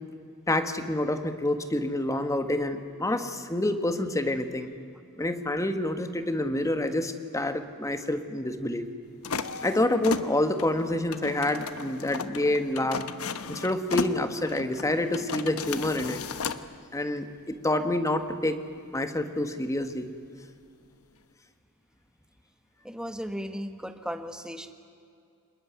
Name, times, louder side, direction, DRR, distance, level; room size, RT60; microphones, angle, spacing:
voice 1, 0.5-4.7 5.2-8.9 9.6-13.0 13.5-16.2 16.9-18.6 18.9-20.1, left 1 dB, 15° left, 8 dB, 1.6 m, -27 dB
sound 1, 9.2-16.6, left 4 dB, 70° left, 1.2 m, -35 dB
voice 2, 22.8-24.7, equal, 5° right, 7 dB, 1.5 m, -36 dB
26.5 x 21.5 x 9.4 m, 2.4 s
head